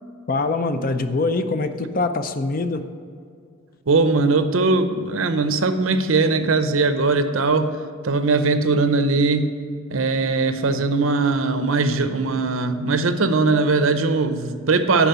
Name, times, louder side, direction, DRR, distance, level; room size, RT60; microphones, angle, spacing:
voice 1, 0.3-2.9, left 3 dB, 45° left, 9 dB, 0.5 m, -23 dB
voice 2, 3.9-7.8 8.0-9.5 9.9-15.1, right 3 dB, 75° right, 9 dB, 0.7 m, -20 dB
10.0 x 4.9 x 6.8 m, 2.2 s
head